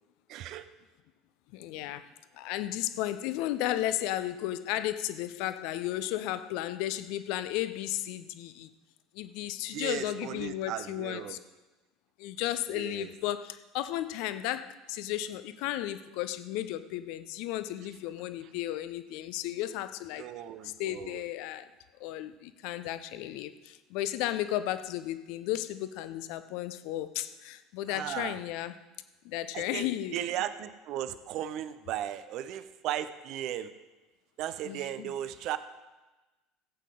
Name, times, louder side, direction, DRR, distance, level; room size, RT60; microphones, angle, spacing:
voice 1, 0.3-0.7 9.7-11.4 12.7-13.1 20.2-21.2 27.9-28.4 29.5-29.9 30.1-33.7 34.4-35.6, right 11 dB, 50° right, 13 dB, 0.6 m, -36 dB
voice 2, 1.5-8.7 9.1-11.4 12.2-20.3 20.6-21.7 22.0-28.7 29.2-30.2 34.6-35.1, left 13 dB, 60° left, 12 dB, 0.6 m, -34 dB
16.0 x 8.3 x 3.7 m, 1.1 s
figure-of-eight pair, 70°, 0 cm